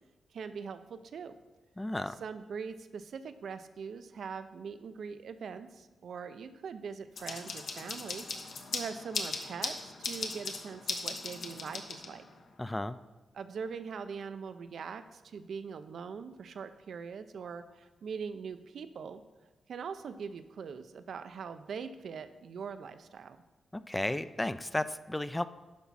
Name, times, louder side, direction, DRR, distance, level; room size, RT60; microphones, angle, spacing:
voice 1, 0.3-1.3 2.1-8.3 8.7-12.3 13.3-19.2 19.7-23.4, right 6 dB, 70° right, 11 dB, 0.5 m, -42 dB
voice 2, 1.8-2.2 12.6-13.0 23.7-25.5, left 1 dB, 15° left, 13 dB, 0.3 m, -33 dB
sound 1, 7.2-12.4, left 4 dB, 75° left, 1.1 m, -38 dB
10.5 x 5.7 x 4.2 m, 1.2 s
cardioid pair, 85°, 0 cm